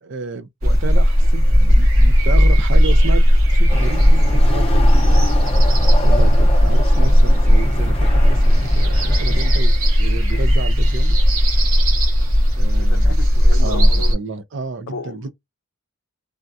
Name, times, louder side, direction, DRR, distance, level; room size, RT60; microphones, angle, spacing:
voice 1, 0.0-3.2 3.5-5.2 6.0-8.4 8.7-11.2 12.6-13.2 13.6-15.3, right 4 dB, 55° right, 0.4 m, -30 dB
sound 1, 0.6-14.1, equal, 80° right, 1.3 m, -14 dB
Chatter / Car passing by / Motorcycle, 3.7-9.6, left 1 dB, 25° left, 0.7 m, -27 dB
voice 2, 12.7-14.2 14.9-15.2, left 4 dB, 70° left, 0.5 m, -33 dB
3.4 x 2.2 x 2.6 m
head